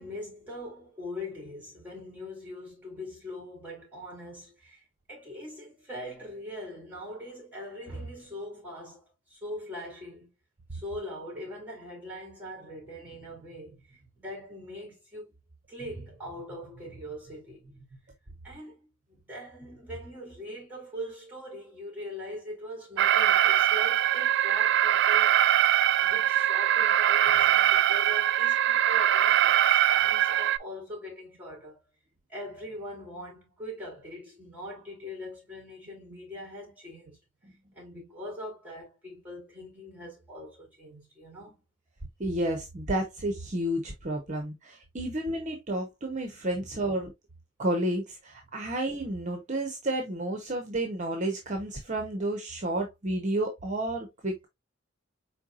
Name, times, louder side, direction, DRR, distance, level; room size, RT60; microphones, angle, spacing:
voice 1, 0.0-10.3 10.7-15.4 15.7-18.1 18.4-25.3 26.0-31.8 32.3-37.2 37.7-41.6 46.5-46.7 48.6-48.7, left 1 dB, 10° right, 3.3 m, -42 dB
Alarm, 23.0-30.6, right 11 dB, 60° right, 0.3 m, -22 dB
voice 2, 42.2-47.1 47.6-54.5, right 1 dB, 40° right, 0.9 m, -31 dB
4.7 x 4.5 x 2.4 m
head